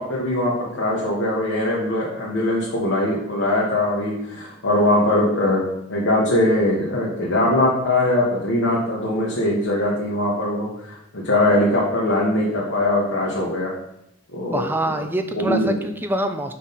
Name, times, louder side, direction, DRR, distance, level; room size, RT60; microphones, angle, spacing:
voice 1, 0.0-5.6 5.9-13.7 14.3-15.0 15.3-15.8, left 1 dB, 70° left, -6 dB, 1.2 m, -21 dB
voice 2, 14.5-16.5, right 1 dB, 10° right, 7 dB, 0.4 m, -25 dB
6.0 x 3.8 x 4.1 m, 0.81 s
head